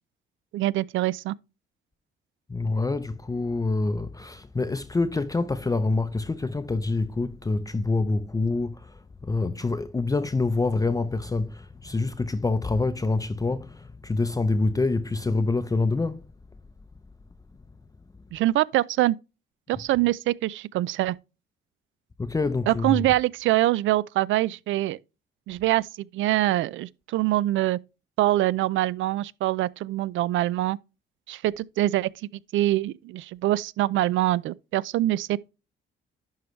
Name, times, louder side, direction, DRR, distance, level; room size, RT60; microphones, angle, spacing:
voice 1, 0.5-1.3 18.3-19.2 19.7-21.2 22.7-25.0 25.5-27.8 28.2-30.8 31.3-35.4, right 15 dB, 80° right, 0.4 m, -24 dB
voice 2, 2.5-16.3 22.2-23.1, left 3 dB, 15° left, 0.6 m, -26 dB
11.0 x 4.7 x 3.1 m
cardioid pair, 90°, 20 cm